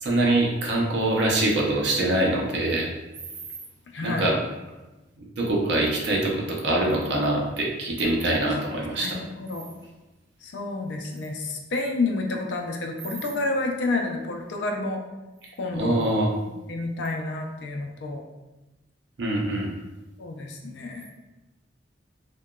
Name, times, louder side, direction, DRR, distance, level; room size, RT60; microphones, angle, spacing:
voice 1, 0.0-2.9 4.0-4.4 5.2-9.2 15.7-16.3 19.2-19.7, right 1 dB, 70° right, -2 dB, 0.6 m, -24 dB
voice 2, 3.9-4.3 9.0-9.6 10.4-15.0 15.6-16.0 16.7-18.2 20.2-21.1, left 2 dB, 70° left, 2 dB, 0.4 m, -29 dB
2.8 x 2.2 x 2.3 m, 1.0 s
head